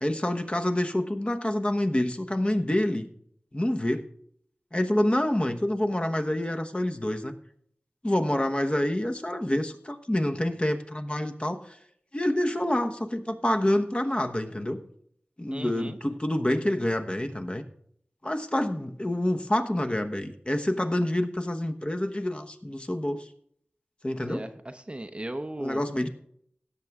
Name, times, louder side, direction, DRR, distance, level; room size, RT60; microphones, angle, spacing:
voice 1, 0.0-3.1 3.5-4.0 4.7-7.4 8.0-11.8 12.1-14.8 15.4-17.6 18.2-23.3 24.0-24.4 25.6-26.1, left 1 dB, 30° left, 5 dB, 1.1 m, -27 dB
voice 2, 15.5-16.0 24.2-25.8, right 1 dB, 30° right, 8 dB, 0.7 m, -37 dB
17.0 x 6.8 x 3.5 m, 0.66 s
wide cardioid pair, 50°, 4 cm